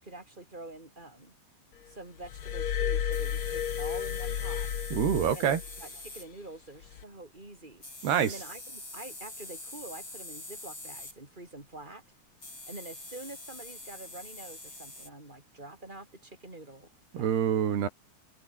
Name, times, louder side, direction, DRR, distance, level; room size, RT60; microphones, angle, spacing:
voice 1, 0.0-1.3 1.9-4.7 5.3-7.8 8.2-12.0 12.7-17.7, right 2 dB, 10° right, 5.6 m, -46 dB
Glass, 2.2-5.8 6.8-7.0, left 9 dB, 60° left, 1.5 m, -32 dB
sound 1, 3.1-6.3 7.8-11.2 12.4-15.1, left 2 dB, 20° left, 6.7 m, -45 dB
voice 2, 4.9-5.6 8.0-8.3 17.1-17.9, right 8 dB, 85° right, 5.0 m, -26 dB
omnidirectional pair, 4.6 m